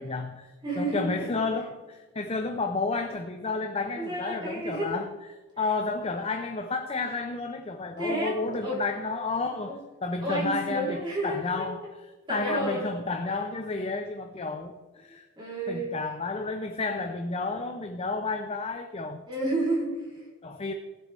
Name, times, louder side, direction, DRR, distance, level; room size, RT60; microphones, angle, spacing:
voice 1, 0.0-12.0 12.3-15.3 15.7-19.2 20.4-20.7, left 3 dB, 25° left, 5 dB, 0.6 m, -31 dB
voice 2, 0.6-1.3 4.0-4.9 8.0-8.8 9.7-9.8 10.2-11.7 12.3-12.9 15.4-15.9 19.3-20.2, right 1 dB, 20° right, -4 dB, 3.5 m, -31 dB
19.0 x 7.7 x 3.4 m, 1.3 s
head